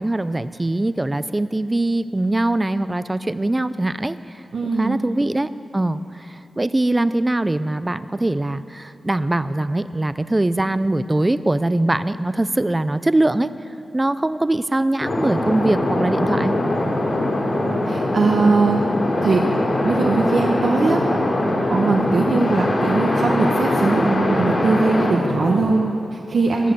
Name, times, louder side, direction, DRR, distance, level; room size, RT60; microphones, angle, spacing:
voice 1, 0.0-4.2 4.8-13.5 13.9-16.6 26.6-26.7, right 2 dB, 15° right, 14 dB, 0.4 m, -22 dB
voice 2, 4.5-5.0 17.9-18.8 19.2-19.4 19.8-21.0 21.7-26.7, right 3 dB, 65° right, 0 dB, 1.0 m, -20 dB
sound 1, 15.0-25.6, left 1 dB, 45° left, 3.1 m, -21 dB
21.0 x 7.2 x 7.7 m, 2.7 s
wide cardioid pair, 120°, 0 cm